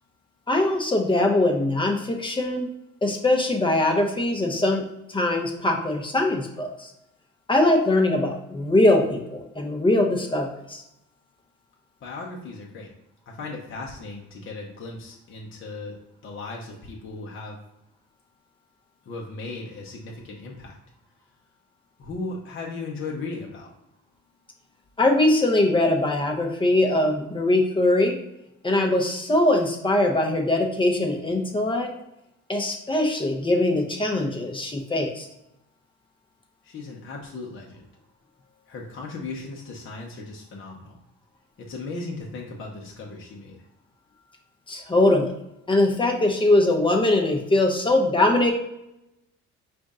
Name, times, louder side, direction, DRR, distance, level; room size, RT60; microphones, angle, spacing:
voice 1, 0.5-2.7 3.0-4.8 5.1-6.9 7.5-10.8 25.0-28.1 28.6-31.9 32.5-35.3 44.7-45.3 45.7-48.5, left 2 dB, 15° left, 2 dB, 0.8 m, -22 dB
voice 2, 12.0-12.9 13.3-15.9 16.2-17.6 19.0-20.8 22.0-23.7 36.6-37.9 38.7-41.0 41.6-43.6, left 3 dB, 40° left, -1 dB, 0.9 m, -36 dB
5.2 x 2.6 x 3.6 m, 0.86 s
cardioid pair, 105°, 30 cm